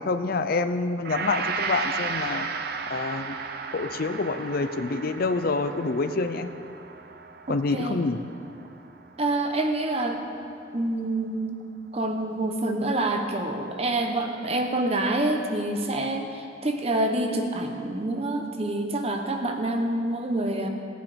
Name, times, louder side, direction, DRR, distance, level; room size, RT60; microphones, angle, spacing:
voice 1, 0.0-2.5 2.9-3.4 3.7-6.5 7.5-8.2, left 3 dB, 50° left, 9 dB, 0.5 m, -27 dB
Gong, 1.0-9.5 9.8-10.0, right 5 dB, 55° right, 0.7 m, -35 dB
voice 2, 7.5-8.1 9.2-10.2 10.7-11.6 11.9-20.7, right 2 dB, 35° right, 4 dB, 1.0 m, -27 dB
17.0 x 8.8 x 5.2 m, 2.6 s
head